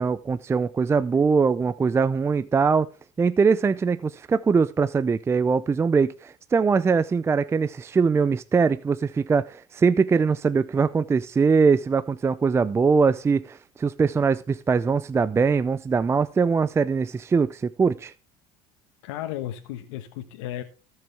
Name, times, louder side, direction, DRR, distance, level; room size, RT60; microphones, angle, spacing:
voice 1, 0.0-2.9 3.2-18.1, right 5 dB, 20° right, 0.5 m, -22 dB
voice 2, 19.0-20.6, left 12 dB, 85° left, 1.3 m, -34 dB
18.5 x 6.4 x 3.4 m
supercardioid pair, 110°, 15 cm